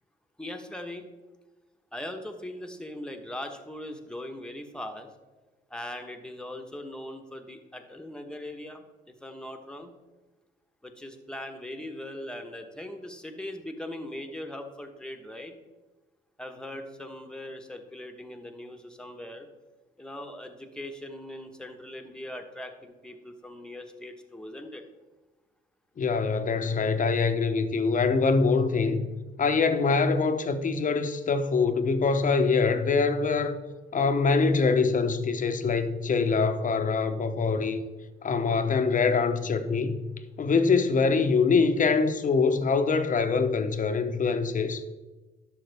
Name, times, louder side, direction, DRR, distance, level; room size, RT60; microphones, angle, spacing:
voice 1, 0.4-1.0 1.9-5.1 5.7-8.8 9.2-9.9 10.8-15.5 16.4-19.5 20.0-24.8 29.8-29.9, left 1 dB, 5° left, 1.2 m, -40 dB
voice 2, 26.0-29.1 29.4-33.6 33.9-37.8 38.2-40.0 40.4-44.8, left 4 dB, 40° left, 0.9 m, -24 dB
12.0 x 6.3 x 3.5 m
cardioid pair, 90°, 20 cm